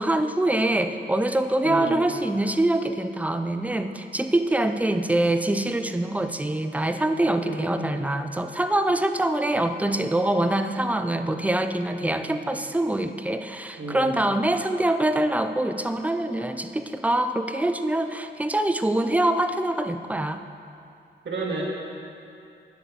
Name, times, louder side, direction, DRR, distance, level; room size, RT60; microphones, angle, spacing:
voice 1, 0.0-20.4, right 1 dB, 5° right, 8 dB, 0.5 m, -24 dB
voice 2, 1.6-2.0 7.5-8.0 12.0-12.3 13.8-14.2 21.2-21.6, right 3 dB, 65° right, -3 dB, 2.3 m, -32 dB
10.5 x 8.4 x 6.7 m, 2.6 s
wide cardioid pair, 125°, 20 cm